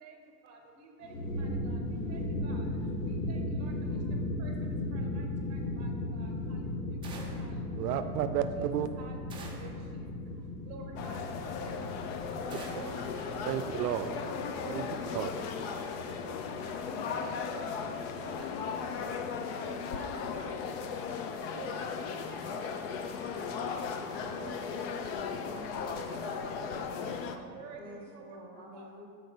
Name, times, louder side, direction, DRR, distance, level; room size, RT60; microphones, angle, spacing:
voice 1, 0.5-1.1 1.4-2.6 3.1-3.7 4.4-4.5 4.9-5.2 5.5-5.9 6.1-6.3 6.9-7.5 7.9-8.0 9.0-9.7 10.7-11.7 12.8-13.8 14.6-14.7 15.6-15.9 16.2-16.3 16.6-16.7 17.1-17.2 18.2-19.1 19.5-20.4 21.5-21.9 22.4-22.5 22.9-23.0 23.7-23.8 24.1-24.8 25.8-26.5 27.0-27.8 28.1-28.2 28.7-28.8, right 5 dB, 35° right, 3 dB, 1.0 m, -50 dB
sound 1, 1.0-19.8, left 1 dB, 80° left, 1.1 m, -37 dB
sound 2, 7.0-7.6 9.3-9.8 12.5-13.0, right 3 dB, 10° right, 0.5 m, -47 dB
voice 2, 7.8-8.9 13.4-14.1 14.7-14.8 15.1-15.3, right 11 dB, 75° right, 9 dB, 0.5 m, -31 dB
sound 3, 11.0-27.4, left 6 dB, 40° left, 0.5 m, -37 dB
voice 3, 25.4-26.3 27.8-29.1, equal, 10° left, -2 dB, 1.0 m, -49 dB
6.4 x 4.4 x 5.4 m, 2.2 s
hypercardioid pair, 125°, 48 cm